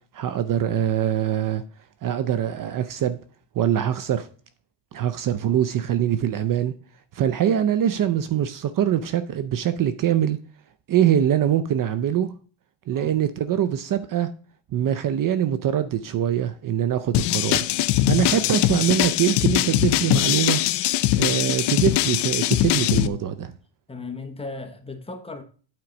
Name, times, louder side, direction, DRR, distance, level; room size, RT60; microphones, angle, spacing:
voice 1, 0.1-1.6 2.0-3.2 3.5-4.3 4.9-6.7 7.1-10.4 10.9-12.3 12.9-14.3 14.7-17.7 18.1-20.6 21.1-23.5, right 10 dB, 45° right, 0.6 m, -23 dB
sound 1, 17.1-23.1, left 15 dB, 60° left, 0.6 m, -21 dB
voice 2, 22.9-23.2 23.9-25.4, left 3 dB, 10° left, 1.1 m, -36 dB
8.9 x 4.5 x 5.1 m
cardioid pair, 140°, 46 cm